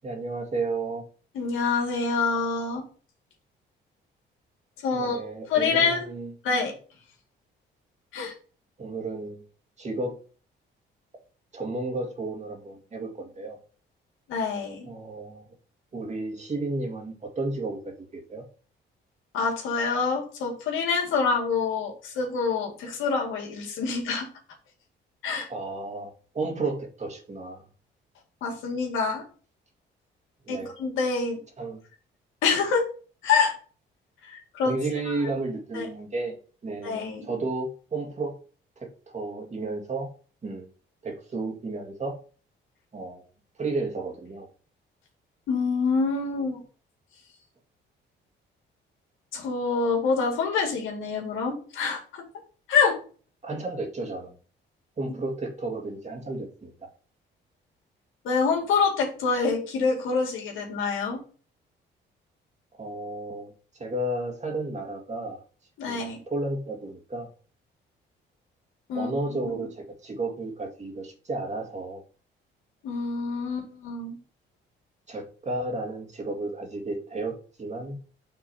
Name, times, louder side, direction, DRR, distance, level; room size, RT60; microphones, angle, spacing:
voice 1, 0.0-1.0 4.9-6.3 8.8-9.4 9.8-10.1 11.5-13.6 14.9-15.4 15.9-17.8 18.1-18.4 25.5-27.6 30.5-30.7 31.6-31.8 34.6-36.4 36.6-38.3 38.8-40.1 40.4-40.7 41.0-42.1 42.9-43.2 43.6-44.5 53.4-54.3 55.0-56.7 62.8-63.5 63.8-65.4 65.9-67.3 68.9-72.0 75.1-78.0, right 2 dB, 35° right, 2 dB, 2.0 m, -32 dB
voice 2, 1.3-2.8 4.8-5.2 5.5-6.1 6.4-6.7 8.1-8.3 14.3-14.9 19.3-24.3 25.2-25.5 28.4-29.2 30.5-31.4 32.4-32.9 33.2-33.5 34.2-34.7 35.7-35.9 36.8-37.3 45.5-46.6 49.3-52.2 52.7-53.0 58.2-61.2 65.8-66.2 68.9-69.1 72.8-74.2, left 5 dB, 90° left, 1 dB, 2.1 m, -26 dB
5.9 x 3.7 x 5.6 m, 0.39 s
cardioid pair, 90°, 20 cm